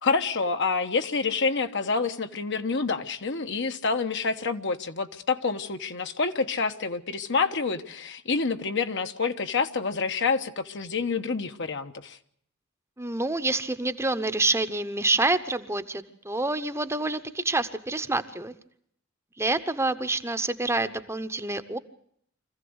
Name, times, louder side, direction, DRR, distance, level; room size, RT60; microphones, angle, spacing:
voice 1, 0.0-12.2, left 4 dB, 60° left, 8 dB, 1.2 m, -27 dB
voice 2, 13.0-18.5 19.4-21.8, right 2 dB, 15° right, 10 dB, 0.9 m, -27 dB
25.0 x 15.5 x 8.0 m, 0.68 s
head